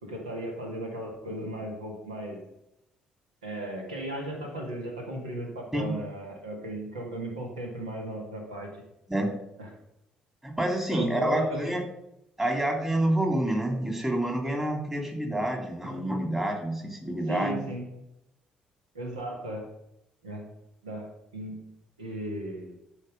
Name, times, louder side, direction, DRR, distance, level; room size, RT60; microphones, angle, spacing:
voice 1, 0.0-2.4 3.4-8.7 9.6-9.7 10.9-11.7 17.3-17.9 18.9-19.7 20.2-20.4 20.8-21.6 22.0-22.7, right 1 dB, 80° right, 1 dB, 1.8 m, -36 dB
voice 2, 10.4-11.8 12.4-17.6, right 1 dB, 10° right, 2 dB, 3.1 m, -28 dB
13.0 x 5.7 x 5.4 m, 0.84 s
figure-of-eight pair, 45°, 4 cm